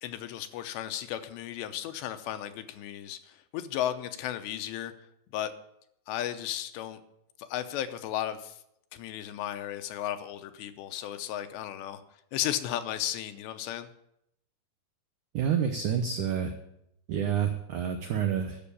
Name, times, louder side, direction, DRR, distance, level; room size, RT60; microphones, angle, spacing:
voice 1, 0.0-4.9 5.3-5.5 6.1-7.0 7.4-8.6 8.9-12.0 12.3-13.9, left 11 dB, 85° left, 9 dB, 3.0 m, -34 dB
voice 2, 15.3-16.5 17.1-18.6, right 8 dB, 85° right, 5 dB, 1.7 m, -28 dB
12.5 x 6.9 x 8.4 m, 0.78 s
omnidirectional pair, 5.0 m